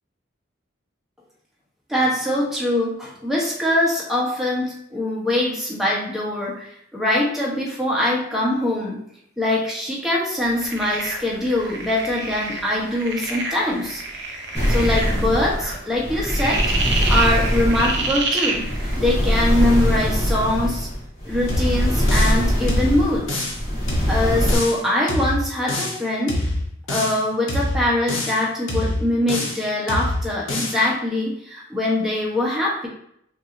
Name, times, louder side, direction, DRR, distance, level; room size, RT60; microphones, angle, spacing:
voice 1, 1.9-9.0 9.4-14.0 14.7-16.6 17.1-18.7 19.0-20.9 21.2-23.4 24.1-26.4 26.9-32.9, left 1 dB, ahead, -5 dB, 0.9 m, -23 dB
sound 1, 10.5-19.0, right 3 dB, 55° right, 0.6 m, -29 dB
sound 2, 14.5-24.5, equal, 30° left, 1.6 m, -22 dB
sound 3, 21.5-22.4 22.7-23.6 23.9-24.8 25.1-26.0 26.3-27.2 27.5-28.4 28.7-29.6 29.9-30.8, left 1 dB, 85° left, 1.1 m, -25 dB
6.0 x 2.7 x 2.6 m, 0.71 s
head